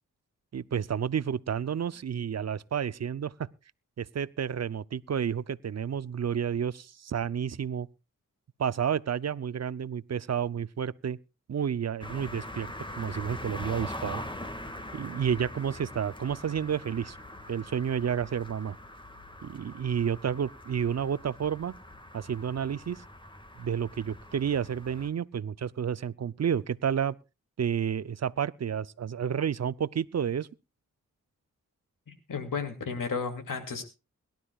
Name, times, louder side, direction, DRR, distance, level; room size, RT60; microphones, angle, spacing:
voice 1, 0.5-3.5 4.0-7.9 8.6-11.2 11.5-12.7 13.0-14.2 14.9-17.2 17.5-18.8 19.4-21.7 22.1-23.0 23.6-27.2 27.6-30.5, right 8 dB, 55° right, 0.6 m, -30 dB
sound 1, 12.0-25.1, left 1 dB, 15° left, 1.9 m, -43 dB
voice 2, 32.1-33.8, left 5 dB, 85° left, 2.7 m, -33 dB
22.5 x 12.0 x 2.4 m
cardioid pair, 55°, 32 cm